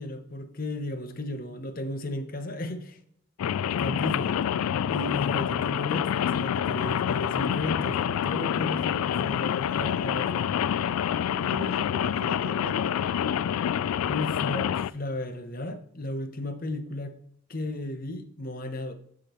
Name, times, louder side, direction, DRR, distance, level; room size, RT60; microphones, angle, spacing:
voice 1, 0.0-3.0 3.8-4.4 4.9-10.5 14.0-17.2 17.5-18.9, left 1 dB, 40° left, 0.9 m, -34 dB
Rain, 3.4-14.9, left 9 dB, 90° left, 0.3 m, -27 dB
sound 1, 7.3-11.5, equal, 15° left, 1.1 m, -49 dB
voice 2, 11.3-13.3, right 2 dB, 80° right, 0.9 m, -41 dB
12.5 x 5.0 x 3.1 m
head